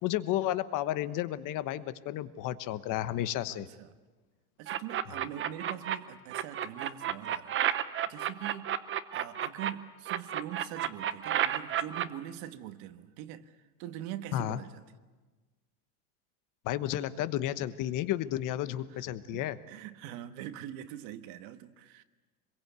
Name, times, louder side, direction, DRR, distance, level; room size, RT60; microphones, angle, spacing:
voice 1, 0.0-3.7 14.3-14.6 16.6-19.6, left 13 dB, 45° left, 1.2 m, -32 dB
voice 2, 3.5-3.9 4.6-8.8 9.1-14.8 18.9-19.0 19.3-22.0, right 12 dB, 60° right, 1.6 m, -43 dB
sound 1, 4.7-6.0 6.3-9.7 10.1-12.1, right 10 dB, 25° right, 0.8 m, -31 dB
26.0 x 22.0 x 8.2 m
supercardioid pair, 140°, 45 cm